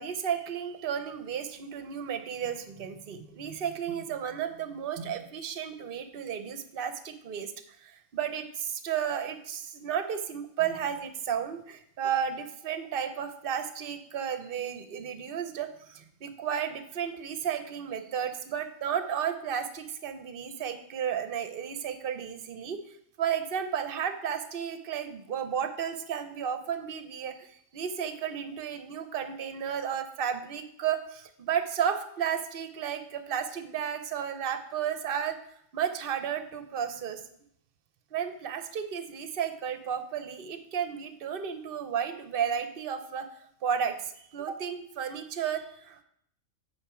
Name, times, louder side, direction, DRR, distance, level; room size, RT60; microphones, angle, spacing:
voice 1, 0.0-22.8 23.2-35.4 35.7-37.2 38.1-43.3 43.6-46.0, right 8 dB, 50° right, 9 dB, 0.8 m, -33 dB
8.8 x 4.6 x 4.9 m, 0.69 s
omnidirectional pair, 1.4 m